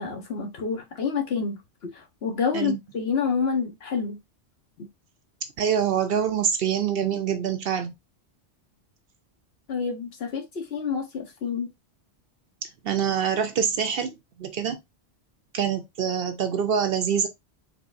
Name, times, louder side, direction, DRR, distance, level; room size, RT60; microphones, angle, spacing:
voice 1, 0.0-1.6 1.9-4.2 4.8-4.9 9.7-11.7, left 6 dB, 60° left, 1.2 m, -28 dB
voice 2, 5.6-7.9 12.8-14.8 15.5-17.3, right 8 dB, 60° right, 0.7 m, -25 dB
4.1 x 3.8 x 2.5 m
omnidirectional pair, 1.2 m